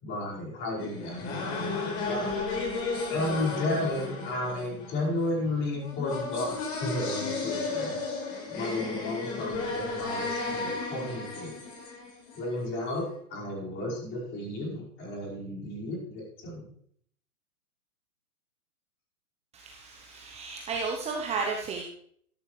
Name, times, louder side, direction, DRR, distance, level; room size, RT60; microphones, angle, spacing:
voice 1, 0.0-2.4 3.1-8.0 8.5-11.6 12.4-16.7, left 1 dB, 25° left, -3 dB, 5.0 m, -33 dB
sound 1, 0.8-12.7, left 3 dB, 45° left, 5.0 m, -34 dB
voice 2, 19.5-21.8, right 4 dB, 15° right, 1 dB, 0.9 m, -33 dB
13.0 x 11.5 x 3.3 m, 0.63 s
hypercardioid pair, 135°, 44 cm